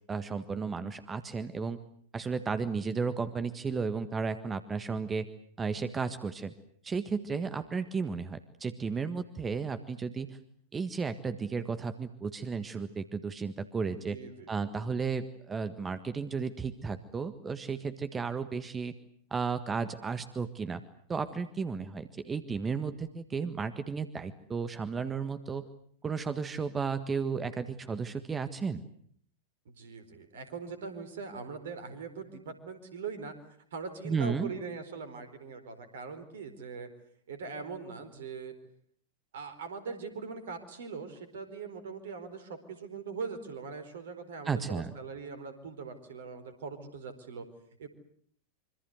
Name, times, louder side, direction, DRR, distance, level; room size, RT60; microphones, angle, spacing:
voice 1, 0.1-1.8 2.1-5.3 5.6-6.5 6.8-10.4 10.7-14.2 14.5-18.9 19.3-20.8 21.1-25.6 26.0-28.8 34.0-34.5 44.4-44.9, right 5 dB, 20° right, 11 dB, 1.6 m, -33 dB
voice 2, 13.9-14.5 29.6-33.3 33.7-36.9 37.3-38.5 39.3-47.4 47.8-47.9, right 5 dB, 60° right, 11 dB, 4.5 m, -41 dB
26.0 x 25.5 x 8.0 m, 0.63 s
figure-of-eight pair, 90°, 0 cm